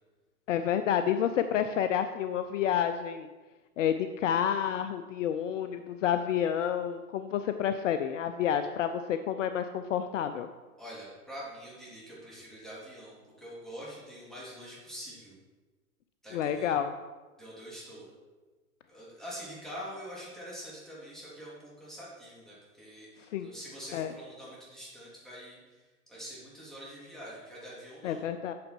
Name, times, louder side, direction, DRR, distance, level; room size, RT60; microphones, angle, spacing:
voice 1, 0.5-3.3 3.8-10.5 16.3-16.9 23.3-23.5 23.9-24.1 28.0-28.5, left 9 dB, 55° left, 9 dB, 0.6 m, -29 dB
voice 2, 10.8-15.4 16.2-16.7 17.4-18.1 18.9-28.2, equal, ahead, -7 dB, 3.2 m, -45 dB
8.4 x 6.9 x 4.6 m, 1.3 s
hypercardioid pair, 125°, 45 cm